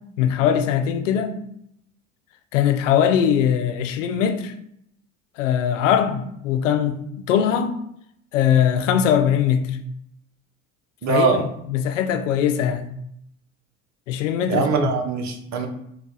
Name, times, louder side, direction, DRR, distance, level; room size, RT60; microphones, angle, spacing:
voice 1, 0.2-1.4 2.5-4.5 5.4-7.0 7.3-7.8 8.3-9.7 11.1-12.9 14.1-14.9, left 8 dB, 85° left, 0.5 m, -21 dB
voice 2, 11.0-11.4 14.5-15.7, right 4 dB, 50° right, 0.9 m, -21 dB
4.3 x 2.3 x 3.8 m
hypercardioid pair, 65°, 36 cm